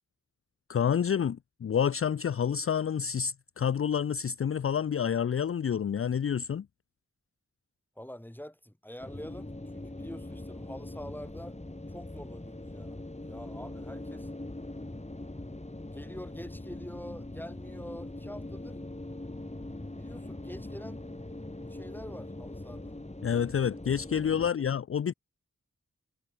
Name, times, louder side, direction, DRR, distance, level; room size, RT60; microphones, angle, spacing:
voice 1, 0.7-6.6 23.2-25.1, left 8 dB, 50° left, 0.4 m, -28 dB
voice 2, 8.0-11.6 11.9-13.0 13.2-14.3 15.9-18.8 20.0-21.0 21.7-23.0 24.4-24.6, equal, 5° left, 6.1 m, -46 dB
sound 1, 9.0-24.5, left 1 dB, 25° left, 6.3 m, -42 dB
wide cardioid pair, 65°, 29 cm